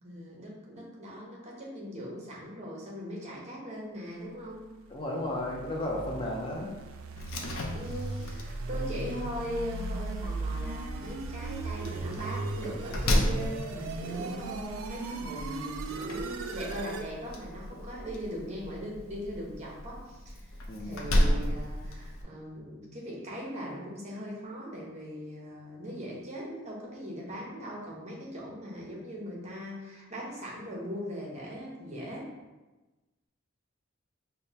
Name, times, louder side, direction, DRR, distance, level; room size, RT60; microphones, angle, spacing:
voice 1, 0.0-4.7 7.7-32.3, equal, 35° right, -3 dB, 0.9 m, -40 dB
voice 2, 4.9-6.7 20.7-21.0, left 1 dB, 25° left, -2 dB, 0.4 m, -33 dB
sound 1, 4.9-17.1, right 3 dB, 70° right, 0.3 m, -38 dB
Slam, 7.2-22.2, left 1 dB, 85° left, 0.5 m, -34 dB
5.1 x 2.2 x 2.8 m, 1.1 s
head